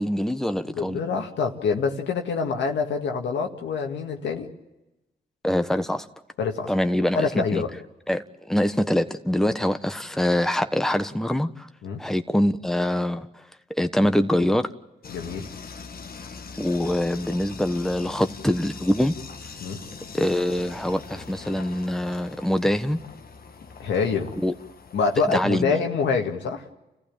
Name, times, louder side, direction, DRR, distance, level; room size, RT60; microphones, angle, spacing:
voice 1, 0.0-1.0 5.4-6.1 6.7-7.6 8.1-11.7 12.0-13.4 13.8-14.7 16.6-19.1 20.1-23.0 24.4-24.5 25.3-25.8, left 1 dB, ahead, 8 dB, 1.3 m, -24 dB
voice 2, 0.8-4.5 6.4-6.7 7.1-7.7 11.8-12.0 15.1-15.5 19.6-19.8 23.8-24.3 24.9-26.6, left 5 dB, 80° left, 3 dB, 1.9 m, -26 dB
sound 1, 15.0-25.4, left 5 dB, 55° left, 1.5 m, -42 dB
29.5 x 15.0 x 8.9 m, 1.0 s
supercardioid pair, 45°, 19 cm